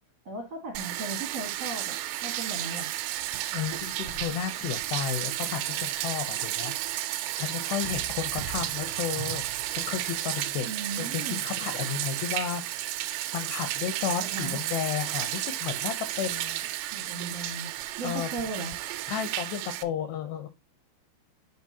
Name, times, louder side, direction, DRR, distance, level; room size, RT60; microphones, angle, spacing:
voice 1, 0.2-2.9 10.7-11.4 14.2-14.6 16.9-17.7 18.0-18.7, right 3 dB, 70° right, 1 dB, 1.5 m, -37 dB
Bathtub (filling or washing), 0.8-19.8, right 14 dB, 90° right, 3.3 m, -32 dB
voice 2, 3.5-7.1 7.3-9.4 9.7-10.7 10.9-12.6 13.3-16.6 18.0-18.3 19.1-20.5, left 9 dB, 80° left, 8 dB, 2.4 m, -33 dB
11.0 x 4.6 x 2.7 m, 0.26 s
omnidirectional pair, 5.7 m